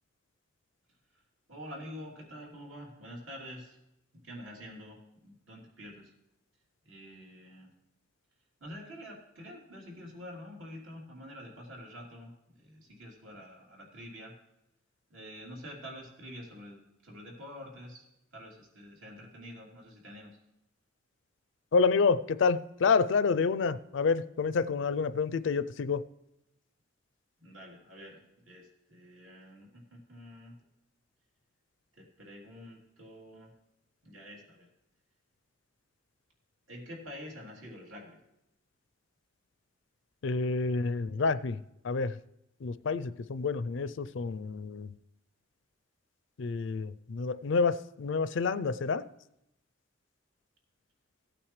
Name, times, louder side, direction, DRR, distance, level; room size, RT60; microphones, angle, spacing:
voice 1, 1.5-3.8 4.2-5.0 5.2-6.1 6.8-7.7 8.6-14.3 15.1-18.0 18.3-20.3 27.4-30.5 32.0-33.5 34.0-34.7 36.7-38.2, equal, 75° right, -3 dB, 3.2 m, -47 dB
voice 2, 21.7-26.0 40.2-41.6 41.8-42.1 42.6-44.9 46.4-49.1, left 4 dB, 65° left, 16 dB, 0.4 m, -28 dB
17.0 x 8.9 x 3.2 m, 0.85 s
head